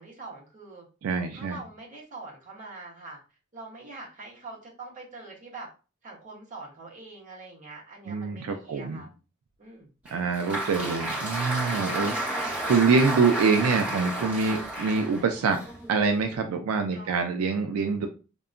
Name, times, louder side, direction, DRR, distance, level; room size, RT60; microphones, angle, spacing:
voice 1, 0.0-0.9 1.3-3.2 3.5-5.7 6.0-9.1 9.6-9.9 16.9-17.2, right 3 dB, 35° right, -3 dB, 0.9 m, -44 dB
voice 2, 1.0-1.6 8.1-9.0 10.1-15.6 15.9-18.1, right 4 dB, 85° right, 5 dB, 0.4 m, -25 dB
Applause, 10.1-16.4, right 1 dB, 5° right, 1.2 m, -32 dB
2.8 x 2.2 x 2.4 m, 0.34 s
head